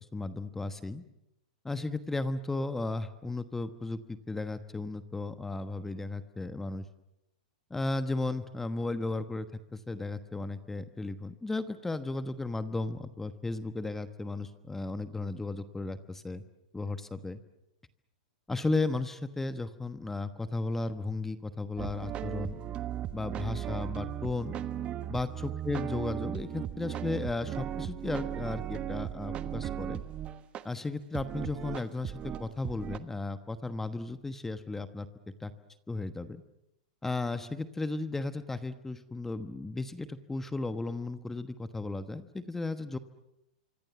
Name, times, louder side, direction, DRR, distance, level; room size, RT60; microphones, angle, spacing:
voice 1, 0.1-1.0 1.6-6.8 7.7-9.5 9.7-16.4 16.7-17.4 18.5-22.6 23.1-24.6 25.1-30.0 30.6-35.1 35.4-35.5 35.9-36.4 37.0-43.0, left 3 dB, 10° left, 11 dB, 1.2 m, -35 dB
sound 1, 21.8-30.6 31.1-33.0, right 10 dB, 25° right, 1.3 m, -37 dB
25.5 x 25.5 x 7.1 m, 0.85 s
hypercardioid pair, 135°, 4 cm